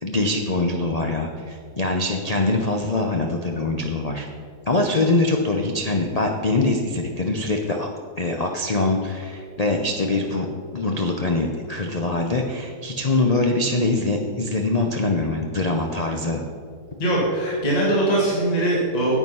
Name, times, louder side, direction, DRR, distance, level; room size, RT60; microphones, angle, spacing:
voice 1, 0.0-4.3 4.7-7.9 8.2-10.5 10.7-16.4, left 2 dB, 75° left, 2 dB, 0.3 m, -23 dB
voice 2, 17.0-19.2, right 1 dB, 20° left, -5 dB, 2.0 m, -21 dB
9.4 x 8.2 x 5.6 m, 2.2 s
omnidirectional pair, 1.9 m